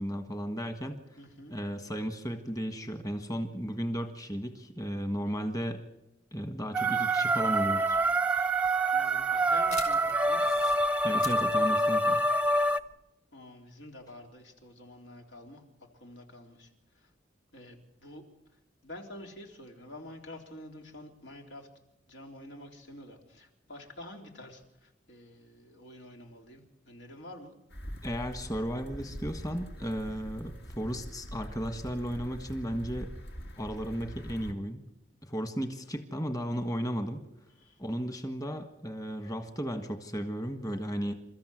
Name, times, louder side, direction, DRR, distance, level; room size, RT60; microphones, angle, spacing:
voice 1, 0.0-1.0 1.5-5.8 6.3-8.0 11.0-12.2 28.0-33.1 33.6-34.8 35.2-37.2 37.8-41.1, equal, 20° left, 6 dB, 1.5 m, -34 dB
voice 2, 1.2-1.6 8.9-10.5 13.3-15.6 16.0-17.1 17.5-18.2 18.5-21.7 22.1-27.5 37.6-37.8, left 1 dB, 85° left, 2 dB, 3.8 m, -48 dB
sound 1, 6.7-12.8, right 1 dB, 5° right, 0.7 m, -26 dB
sound 2, 7.9-12.9, left 6 dB, 40° left, 5.6 m, -46 dB
sound 3, 27.7-34.5, equal, 65° left, 2.1 m, -43 dB
28.5 x 14.0 x 7.9 m, 0.90 s
head